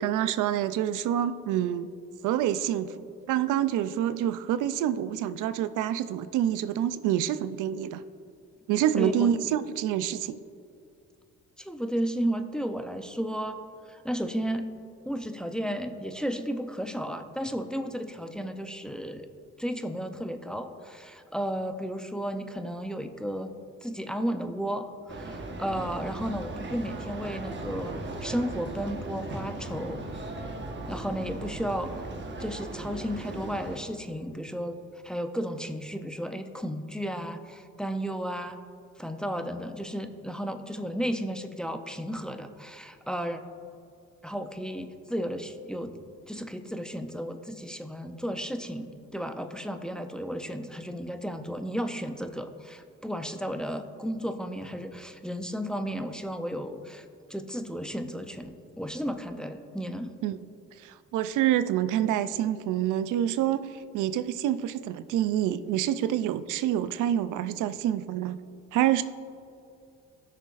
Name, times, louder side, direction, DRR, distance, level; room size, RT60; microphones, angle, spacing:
voice 1, 0.0-1.9 2.2-8.0 8.7-10.4 60.2-60.4 60.8-68.4 68.7-69.0, right 11 dB, 85° right, 13 dB, 0.5 m, -27 dB
voice 2, 9.0-9.3 11.6-13.6 13.9-14.7 15.1-19.3 19.6-23.5 23.8-27.9 28.2-30.1 30.9-31.9 32.4-34.8 35.0-38.6 39.0-43.4 44.2-46.0 46.3-60.1, equal, 5° left, 7 dB, 0.5 m, -33 dB
sound 1, 25.1-33.8, right 2 dB, 40° right, 1.2 m, -37 dB
16.5 x 6.5 x 2.5 m, 2.5 s
cardioid pair, 90°, 30 cm